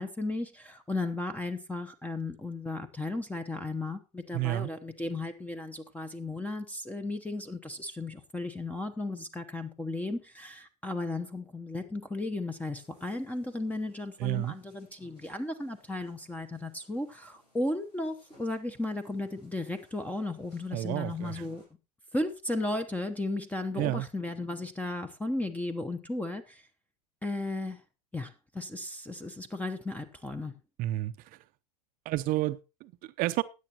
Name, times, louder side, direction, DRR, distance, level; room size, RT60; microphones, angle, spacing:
voice 1, 0.0-21.6 22.1-26.7 27.2-27.8 28.1-30.5, left 2 dB, 5° left, 0.9 m, -35 dB
voice 2, 4.3-4.7 14.2-14.5 20.7-21.4 23.8-24.1 30.8-31.1 32.1-33.4, right 16 dB, 45° right, 0.7 m, -30 dB
sound 1, 12.7-21.7, left 1 dB, 85° left, 7.6 m, -65 dB
16.0 x 10.0 x 2.9 m
hypercardioid pair, 90°, 21 cm